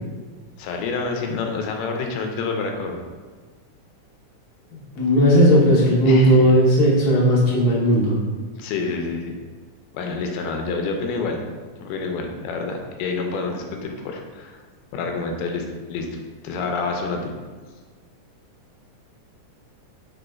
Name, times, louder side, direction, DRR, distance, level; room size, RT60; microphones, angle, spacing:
voice 1, 0.6-3.0 6.1-6.4 8.6-9.3 9.9-11.4 11.8-14.6 14.9-17.3, left 4 dB, 85° left, 3 dB, 2.1 m, -28 dB
voice 2, 4.7-8.2, equal, 65° left, -6 dB, 1.3 m, -16 dB
4.9 x 4.1 x 2.3 m, 1.5 s
omnidirectional pair, 3.7 m